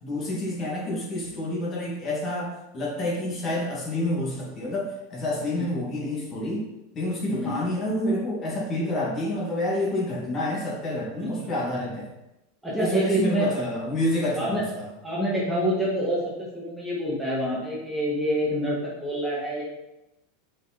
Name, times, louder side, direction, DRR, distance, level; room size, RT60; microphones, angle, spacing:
voice 1, 0.0-6.7 6.9-12.1 12.7-14.9, left 1 dB, 30° left, -3 dB, 2.3 m, -28 dB
voice 2, 12.6-13.5 14.4-14.7 15.0-19.6, equal, 5° right, -6 dB, 2.0 m, -27 dB
7.2 x 5.4 x 4.3 m, 0.94 s
supercardioid pair, 150°, 0 cm